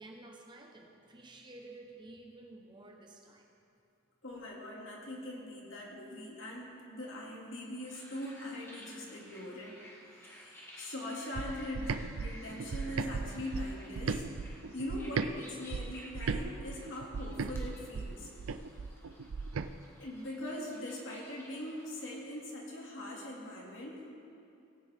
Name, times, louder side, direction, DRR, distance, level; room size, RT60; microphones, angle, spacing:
voice 1, 0.0-3.5, right 2 dB, 20° right, 1 dB, 0.9 m, -52 dB
voice 2, 4.2-9.8 10.2-14.3 14.7-18.3 20.0-24.1, left 1 dB, 65° left, -3 dB, 2.2 m, -42 dB
sound 1, 7.8-22.2, equal, 10° left, 1.2 m, -55 dB
sound 2, 11.4-15.3 15.7-19.7, right 4 dB, 90° right, 0.4 m, -37 dB
17.5 x 9.1 x 3.5 m, 2.6 s
head